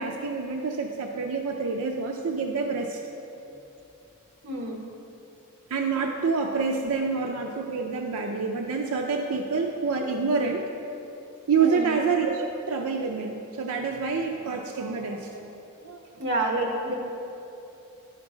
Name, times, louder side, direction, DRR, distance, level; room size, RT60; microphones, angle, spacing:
voice 1, 0.0-3.0 5.7-10.7 11.5-15.5 15.8-16.0, right 4 dB, 85° right, 2 dB, 0.5 m, -27 dB
voice 2, 4.4-4.8 11.6-12.0 16.2-16.9, right 1 dB, 55° right, 0 dB, 1.2 m, -28 dB
10.5 x 5.9 x 3.8 m, 2.9 s
head